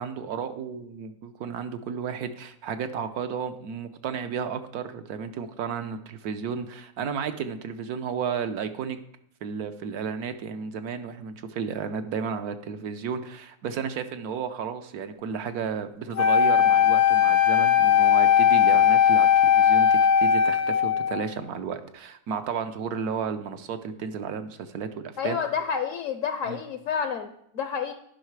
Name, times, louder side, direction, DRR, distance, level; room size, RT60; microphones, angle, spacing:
voice 1, 0.0-9.0 9.4-25.4 26.4-26.6, right 6 dB, 75° right, 9 dB, 1.3 m, -33 dB
Wind instrument woodwind instrument, 16.2-21.3, left 8 dB, 85° left, 1.3 m, -19 dB
voice 2, 25.2-27.9, left 7 dB, 65° left, 8 dB, 0.9 m, -29 dB
10.5 x 5.6 x 4.7 m, 0.73 s
omnidirectional pair, 1.6 m